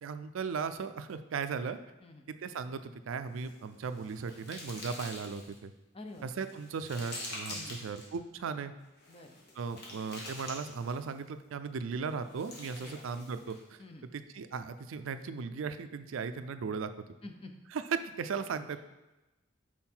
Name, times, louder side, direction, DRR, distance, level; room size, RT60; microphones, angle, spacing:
voice 1, 0.0-1.8 2.3-5.7 6.2-8.7 9.6-13.8 14.1-16.9 17.7-18.8, right 5 dB, 90° right, 11 dB, 0.4 m, -37 dB
sound 1, 3.3-5.6 6.1-8.1 9.0-11.1 12.1-13.7, left 1 dB, 55° left, 1.5 m, -46 dB
voice 2, 5.9-6.3 7.5-7.8 9.1-9.4 12.8-13.0 13.8-14.1 17.2-17.5, left 2 dB, 30° left, 4 dB, 0.6 m, -48 dB
5.6 x 4.6 x 4.4 m, 1.1 s
head